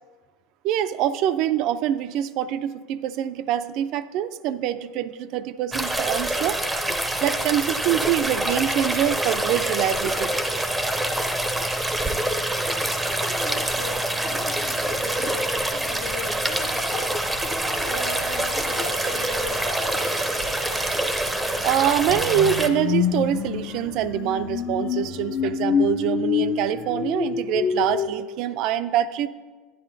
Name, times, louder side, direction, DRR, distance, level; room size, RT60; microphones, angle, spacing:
voice 1, 0.6-6.6 7.2-10.3 21.6-29.3, right 11 dB, 55° right, 13 dB, 0.4 m, -25 dB
sound 1, 5.7-22.7, right 1 dB, 5° right, 0.6 m, -26 dB
voice 2, 13.2-17.5 17.7-20.1, left 3 dB, 75° left, 2 dB, 1.2 m, -38 dB
Train, 14.4-24.8, right 6 dB, 80° right, 0.8 m, -42 dB
sound 2, 22.1-28.1, left 7 dB, 45° left, 0.6 m, -26 dB
10.5 x 9.8 x 2.6 m, 1.3 s
supercardioid pair, 125°, 0 cm